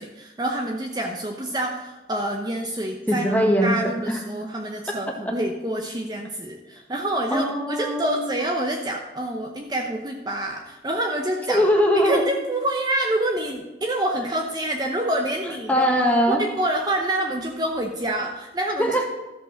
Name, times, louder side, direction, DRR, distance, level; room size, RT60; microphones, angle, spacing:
voice 1, 0.0-11.6 11.9-16.0 16.6-18.9, right 1 dB, 25° right, 2 dB, 0.8 m, -27 dB
voice 2, 3.1-3.7 4.1-4.2 5.2-5.3 7.3-8.3 11.5-12.2 15.7-16.4 18.8-19.0, equal, 10° left, 2 dB, 1.4 m, -21 dB
13.5 x 5.3 x 6.5 m, 1.1 s
head